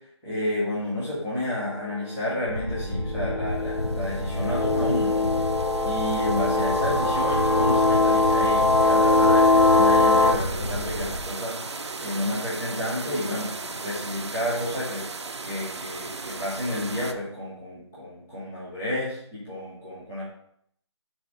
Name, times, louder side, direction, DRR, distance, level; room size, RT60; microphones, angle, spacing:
voice 1, 0.2-5.3 5.8-15.0 15.4-20.2, left 1 dB, 5° left, -11 dB, 0.5 m, -31 dB
sound 1, 2.0-2.1 2.9-10.3, left 2 dB, 65° left, 0.8 m, -21 dB
sound 2, 2.5-11.2, equal, 35° left, 1.9 m, -31 dB
sound 3, 3.6-17.1, right 3 dB, 65° right, 0.6 m, -37 dB
5.4 x 3.6 x 4.9 m, 0.69 s
figure-of-eight pair, 170°, 15 cm